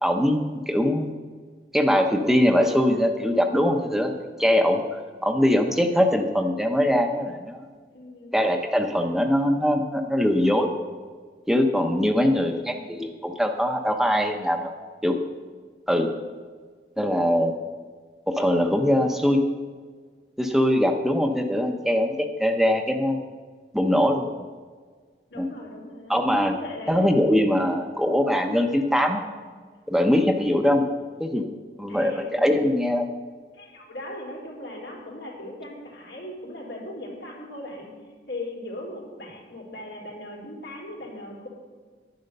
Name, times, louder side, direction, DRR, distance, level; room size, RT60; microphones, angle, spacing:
voice 1, 0.0-1.1 1.7-4.1 4.4-7.6 8.3-10.7 11.5-14.7 15.0-15.2 15.9-16.1 17.0-17.5 18.3-19.4 20.4-23.2 23.7-24.3 25.4-25.5 26.1-26.6 26.9-29.2 29.9-30.8 31.2-31.4 31.8-33.1, equal, ahead, 4 dB, 0.7 m, -22 dB
voice 2, 7.9-8.3 12.1-12.8 25.3-26.2 26.5-27.0 27.6-27.7 31.9-32.5 33.5-37.9 38.3-41.5, left 1 dB, 90° left, -3 dB, 3.8 m, -39 dB
10.5 x 10.0 x 6.7 m, 1.5 s
head